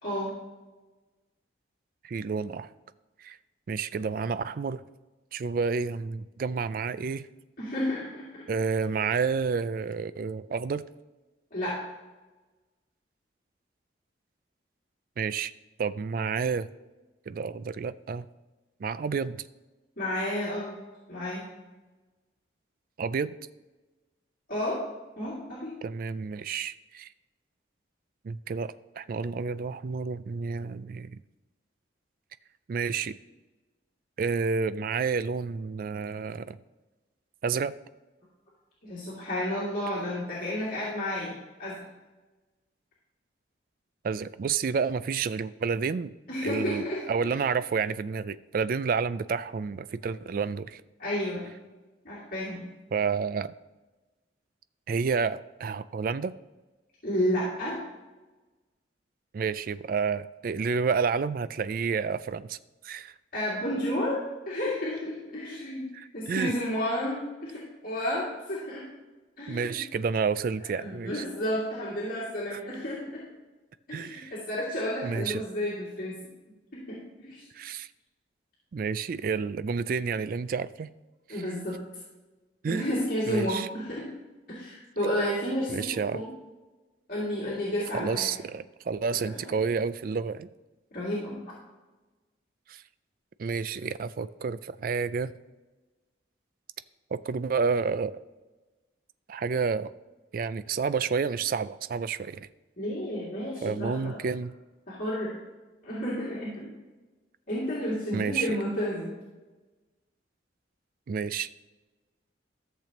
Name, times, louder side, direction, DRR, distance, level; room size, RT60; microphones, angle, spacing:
voice 1, 0.0-0.3 7.6-8.4 11.5-11.8 20.0-20.7 21.1-21.4 24.5-24.8 25.2-25.7 38.8-41.3 41.6-41.7 46.3-47.4 51.0-51.4 52.0-52.7 57.0-57.8 63.3-64.2 64.5-65.9 66.1-68.8 69.4-69.8 70.7-73.2 73.9-76.2 76.7-77.4 81.3-81.8 82.7-84.1 84.5-85.9 86.1-86.3 87.1-88.3 89.4-89.6 90.9-91.4 102.8-104.1 104.9-105.4 105.8-106.7 107.5-109.1, equal, 50° left, -9 dB, 2.5 m, -31 dB
voice 2, 2.0-2.7 3.2-3.4 3.7-4.8 5.3-7.3 8.5-10.8 15.2-15.5 15.8-16.7 17.3-18.3 18.8-19.5 23.0-23.3 25.8-27.1 28.2-31.2 32.7-33.2 34.2-36.6 37.4-37.7 44.0-46.1 46.4-50.8 52.9-53.5 54.9-56.3 59.3-62.6 62.8-63.1 65.9-66.5 69.5-71.2 72.5-72.6 73.9-74.4 75.0-75.4 77.5-77.9 78.7-80.9 81.3-81.6 82.6-82.8 83.3-83.7 85.7-86.2 87.9-90.5 92.7-92.8 93.4-95.3 97.1-98.2 99.3-99.9 100.3-102.5 103.6-104.5 108.1-108.6 111.1-111.5, right 5 dB, 50° right, 15 dB, 0.3 m, -30 dB
13.5 x 6.9 x 3.0 m, 1.2 s
head